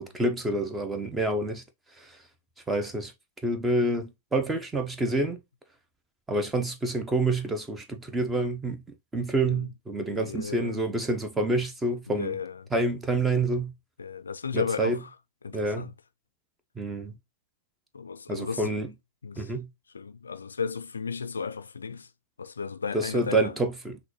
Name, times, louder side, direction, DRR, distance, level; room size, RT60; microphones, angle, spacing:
voice 1, 0.0-1.6 2.0-2.2 2.7-3.1 3.4-5.4 6.3-8.8 9.1-12.3 12.7-13.7 14.5-15.0 15.5-15.9 16.8-17.2 18.3-18.9 19.4-19.7 22.9-24.0, right 2 dB, 10° right, 0.9 m, -28 dB
voice 2, 10.1-10.8 12.1-12.7 14.0-15.1 15.4-15.9 17.9-18.8 19.2-19.5 19.9-22.1 22.4-23.6, left 5 dB, 80° left, 0.4 m, -34 dB
6.0 x 2.6 x 3.0 m
figure-of-eight pair, 100°, 0 cm